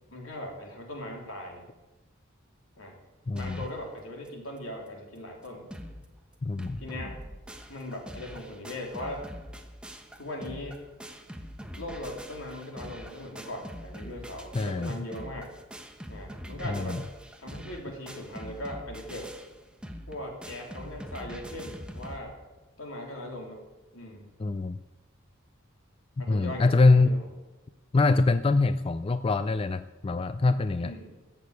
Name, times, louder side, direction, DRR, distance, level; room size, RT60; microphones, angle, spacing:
voice 1, 0.1-1.7 2.8-2.9 3.3-5.6 6.8-7.2 7.7-9.2 10.2-10.8 11.8-15.5 16.1-17.0 17.4-19.3 20.1-22.3 22.8-23.6 23.9-24.3 26.2-27.3 30.8-31.1, left 1 dB, 75° left, 0 dB, 3.4 m, -39 dB
voice 2, 3.3-3.6 6.4-6.8 14.5-15.0 16.6-17.0 24.4-24.8 26.2-27.2 27.9-30.9, left 3 dB, 25° left, 12 dB, 0.3 m, -24 dB
sound 1, 3.4-3.8 4.3-4.4 4.6-4.7 5.2-5.3 5.4-6.1 6.3-22.2, equal, 5° right, 1.0 m, -43 dB
14.5 x 6.8 x 8.2 m, 1.1 s
head